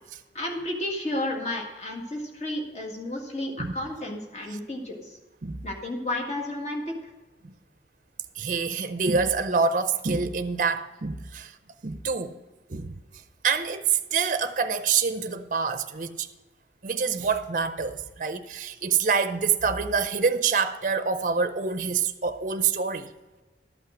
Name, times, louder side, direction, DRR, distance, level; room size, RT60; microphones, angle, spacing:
voice 1, 0.3-5.2 5.6-6.9, left 1 dB, 40° left, 1.8 m, -32 dB
voice 2, 8.4-11.5 11.8-12.3 12.7-12.9 13.4-16.3 16.8-23.1, right 5 dB, 45° right, 0.6 m, -26 dB
13.0 x 5.8 x 6.2 m
head